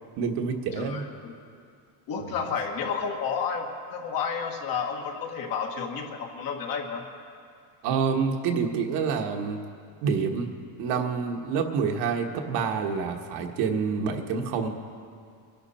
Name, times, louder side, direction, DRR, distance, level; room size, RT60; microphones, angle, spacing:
voice 1, 0.2-1.0 2.2-2.3 7.8-9.6 10.0-10.5 10.8-14.7, right 5 dB, 55° right, 3 dB, 1.5 m, -27 dB
voice 2, 0.8-1.4 2.1-7.1, left 6 dB, 45° left, 2 dB, 1.9 m, -31 dB
23.5 x 11.0 x 4.4 m, 2.3 s
supercardioid pair, 135°, 48 cm